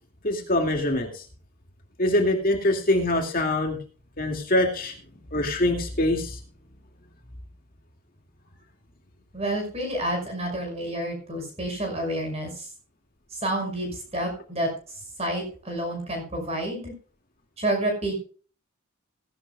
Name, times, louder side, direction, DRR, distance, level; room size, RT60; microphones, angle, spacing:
voice 1, 0.2-1.2 2.0-3.8 4.2-4.9 5.3-6.4, left 1 dB, 40° left, 2 dB, 2.3 m, -24 dB
voice 2, 9.3-12.7 13.3-14.7 15.2-16.9 17.6-18.1, right 1 dB, 30° right, 4 dB, 5.8 m, -29 dB
17.5 x 11.5 x 2.3 m, 0.40 s
head